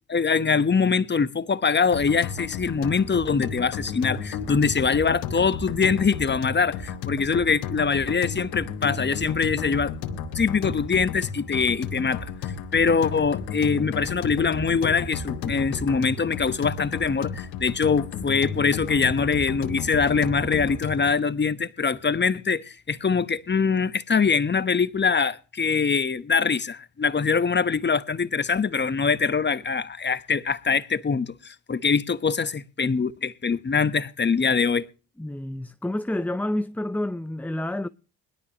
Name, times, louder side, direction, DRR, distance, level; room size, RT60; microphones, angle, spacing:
voice 1, 0.1-9.9 10.3-34.9, left 5 dB, 25° left, 1.1 m, -23 dB
sound 1, 1.9-21.1, left 6 dB, 80° left, 2.6 m, -33 dB
voice 2, 35.2-37.9, left 1 dB, 5° left, 0.6 m, -29 dB
21.0 x 12.0 x 3.0 m
hypercardioid pair, 60°, 40 cm